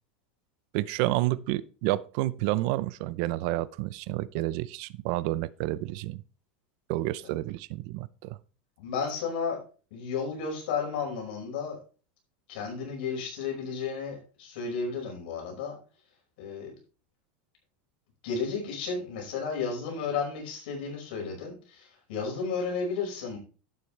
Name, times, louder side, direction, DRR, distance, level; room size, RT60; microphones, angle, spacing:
voice 1, 0.7-6.2 6.9-8.4, right 17 dB, 55° right, 0.6 m, -30 dB
voice 2, 8.8-9.6 9.9-11.8 12.5-15.8 16.4-16.7 18.2-23.4, left 5 dB, 70° left, 5.2 m, -33 dB
11.5 x 8.3 x 3.3 m
supercardioid pair, 150°, 5 cm